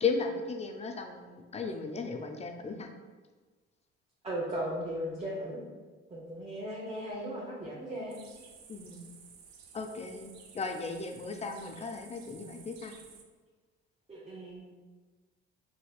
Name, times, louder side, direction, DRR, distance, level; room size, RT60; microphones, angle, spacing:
voice 1, 0.0-2.9 8.7-9.0 9.7-10.3 10.5-12.9, left 4 dB, 20° left, 4 dB, 0.4 m, -35 dB
voice 2, 4.2-5.6 6.1-8.2 14.1-14.7, equal, 20° right, -6 dB, 0.8 m, -37 dB
sound 1, 8.1-13.2, right 6 dB, 80° right, 0.5 m, -54 dB
4.1 x 2.6 x 2.3 m, 1.4 s
hypercardioid pair, 55°, 31 cm